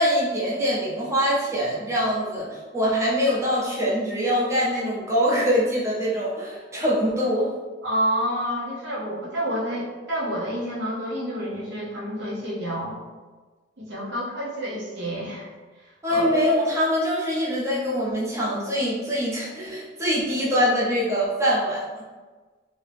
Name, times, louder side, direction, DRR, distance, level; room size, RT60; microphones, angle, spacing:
voice 1, 0.0-7.5 16.0-22.0, equal, 15° right, -7 dB, 0.6 m, -24 dB
voice 2, 7.8-13.0 13.8-15.5 16.1-16.4, equal, 65° right, -5 dB, 0.9 m, -29 dB
2.7 x 2.7 x 3.3 m, 1.3 s
head